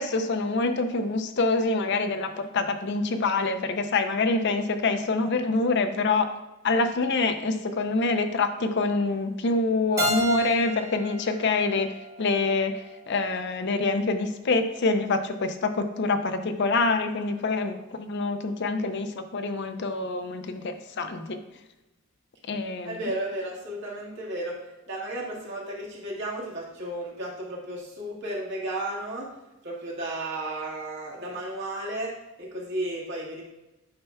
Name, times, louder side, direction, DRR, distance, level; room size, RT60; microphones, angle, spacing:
voice 1, 0.0-6.3 6.6-21.4 22.5-23.0, left 3 dB, 50° left, 7 dB, 0.5 m, -26 dB
Keyboard (musical), 10.0-12.8, right 1 dB, 15° right, 0.9 m, -32 dB
voice 2, 22.8-24.6 24.9-29.3 29.6-32.1 32.4-33.4, right 1 dB, 55° right, -4 dB, 1.7 m, -33 dB
8.7 x 5.7 x 2.2 m, 1.0 s
head